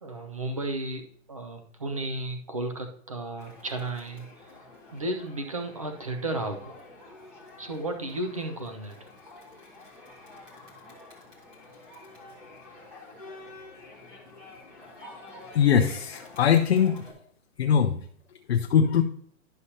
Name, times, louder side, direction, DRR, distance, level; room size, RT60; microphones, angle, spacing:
voice 1, 0.0-4.5 4.9-6.7 7.1-9.1, right 2 dB, 25° right, 6 dB, 0.4 m, -34 dB
Crowd, 3.4-17.1, left 2 dB, 10° right, 1.2 m, -49 dB
voice 2, 15.5-17.0 17.6-18.0 18.5-19.0, left 8 dB, 50° left, 6 dB, 0.5 m, -21 dB
11.0 x 6.4 x 2.8 m, 0.62 s
hypercardioid pair, 180°, 40 cm